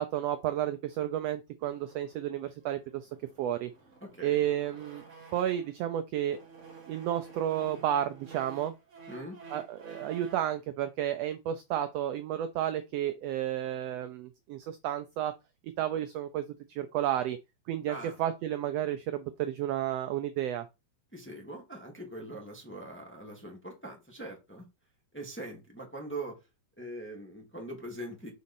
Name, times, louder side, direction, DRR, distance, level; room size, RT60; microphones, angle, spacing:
voice 1, 0.0-3.1 3.4-3.7 4.2-5.0 5.3-6.4 6.9-8.7 9.5-15.3 15.8-16.4 16.7-17.4 17.7-20.7, right 11 dB, 90° right, 1.4 m, -32 dB
sound 1, 1.6-5.8 6.2-10.6, right 4 dB, 40° right, 1.1 m, -51 dB
voice 2, 4.0-4.4 9.1-9.4 17.9-18.2 21.1-24.6 25.1-26.4 26.8-28.3, right 1 dB, 10° left, 0.7 m, -42 dB
6.3 x 4.1 x 4.1 m
omnidirectional pair, 3.5 m